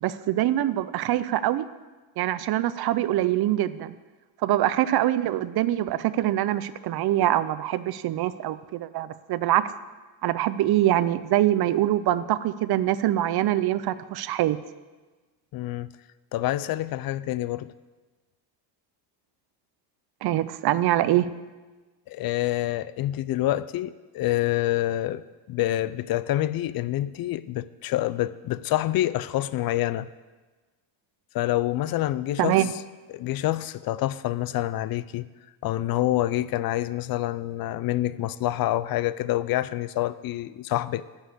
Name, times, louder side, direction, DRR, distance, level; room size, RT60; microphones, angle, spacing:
voice 1, 0.0-1.7 2.2-3.9 4.4-9.6 10.2-14.6 20.2-21.3 32.4-32.7, right 13 dB, 50° right, 15 dB, 0.6 m, -24 dB
voice 2, 15.5-15.9 16.3-17.7 22.1-25.2 25.5-30.1 31.3-32.6 33.1-35.3 35.6-41.0, left 14 dB, 50° left, 17 dB, 0.5 m, -27 dB
9.7 x 6.4 x 7.9 m, 1.3 s
cardioid pair, 110°, 49 cm